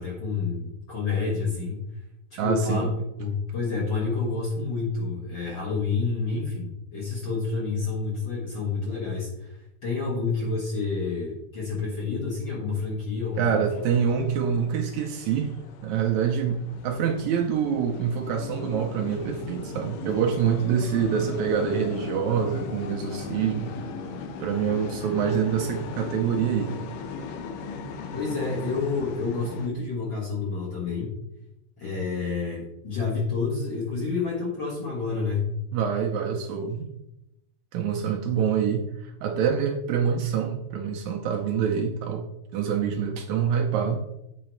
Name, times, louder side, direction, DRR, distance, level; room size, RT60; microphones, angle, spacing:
voice 1, 0.0-1.8 2.3-2.9 3.2-13.6 28.1-31.1 31.8-35.5, left 4 dB, 50° left, -4 dB, 1.5 m, -29 dB
voice 2, 2.4-2.9 13.4-15.5 15.8-23.7 24.4-26.8 35.7-36.9 37.7-42.3 42.5-44.0, right 7 dB, 80° right, 2 dB, 1.8 m, -26 dB
sound 1, 13.3-29.7, left 4 dB, 85° left, 2.4 m, -38 dB
8.6 x 3.9 x 4.5 m, 0.87 s
omnidirectional pair, 3.7 m